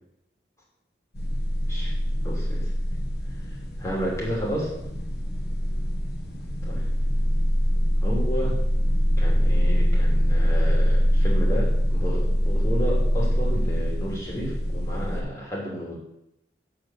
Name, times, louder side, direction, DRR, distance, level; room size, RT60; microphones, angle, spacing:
sound 1, 1.2-15.2, equal, 70° left, 1.6 m, -23 dB
voice 1, 1.7-2.7 3.8-4.7 6.6-6.9 8.0-8.6 9.2-15.9, equal, 15° left, -5 dB, 3.1 m, -32 dB
8.3 x 5.1 x 7.4 m, 0.83 s
head